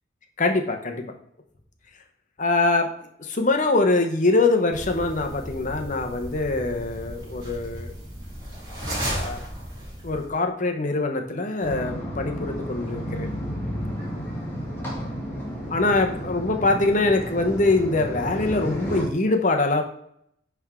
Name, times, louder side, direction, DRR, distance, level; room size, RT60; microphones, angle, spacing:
voice 1, 0.4-1.0 2.4-2.9 3.3-7.9 9.1-9.4 10.0-13.3 15.7-19.8, left 2 dB, 40° left, 5 dB, 0.9 m, -23 dB
sound 1, 4.7-10.3, equal, 20° right, 3.1 m, -34 dB
sound 2, 11.6-19.0, equal, 10° left, 1.7 m, -32 dB
10.5 x 3.6 x 3.7 m, 0.69 s
head